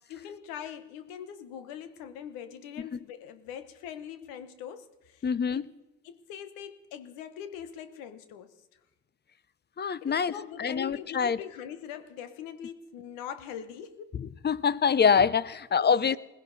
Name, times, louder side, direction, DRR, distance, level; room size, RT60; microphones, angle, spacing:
voice 1, 0.1-5.2 5.5-5.7 6.0-8.5 10.0-14.1, left 9 dB, 85° left, 1.1 m, -42 dB
voice 2, 5.2-5.7 9.8-11.4 14.1-16.2, left 6 dB, 30° left, 0.6 m, -25 dB
20.5 x 15.5 x 4.1 m
supercardioid pair, 60°, 34 cm